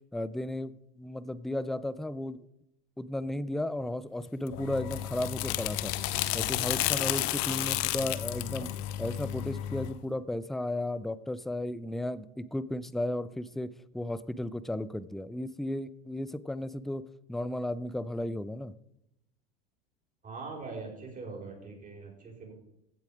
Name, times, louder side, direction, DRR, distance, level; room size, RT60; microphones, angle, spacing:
voice 1, 0.1-2.4 3.0-5.9 6.3-8.7 9.0-13.7 13.9-17.0 17.3-18.7, left 1 dB, ahead, 16 dB, 0.4 m, -34 dB
sound 1, 4.5-9.9, left 14 dB, 55° left, 0.9 m, -32 dB
voice 2, 7.7-8.1 20.2-22.5, right 4 dB, 25° right, 1 dB, 4.9 m, -42 dB
15.5 x 7.1 x 5.1 m, 0.83 s
hypercardioid pair, 95°, 31 cm